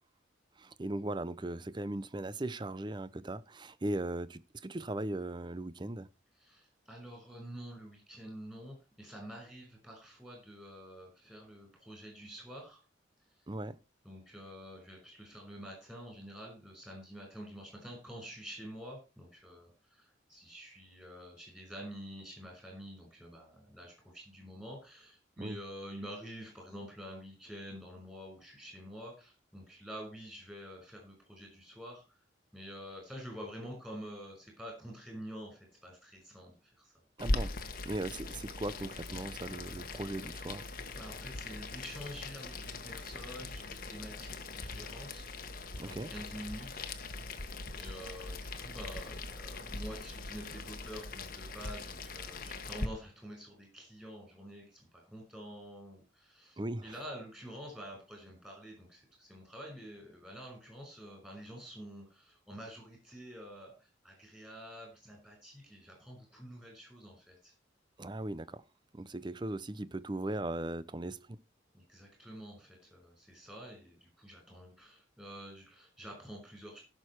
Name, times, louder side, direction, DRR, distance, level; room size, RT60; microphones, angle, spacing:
voice 1, 0.6-6.1 13.5-13.8 25.4-25.6 37.2-37.6 37.8-40.7 45.8-46.1 56.6-56.9 68.0-68.6 68.9-71.4, right 1 dB, 25° right, 0.5 m, -38 dB
voice 2, 6.4-12.8 14.0-32.2 32.5-36.9 41.0-45.3 45.8-46.9 47.7-67.5 71.7-76.8, equal, 5° right, 5.5 m, -48 dB
Boiling, 37.2-52.9, left 2 dB, 45° left, 1.2 m, -40 dB
16.0 x 6.7 x 4.6 m
head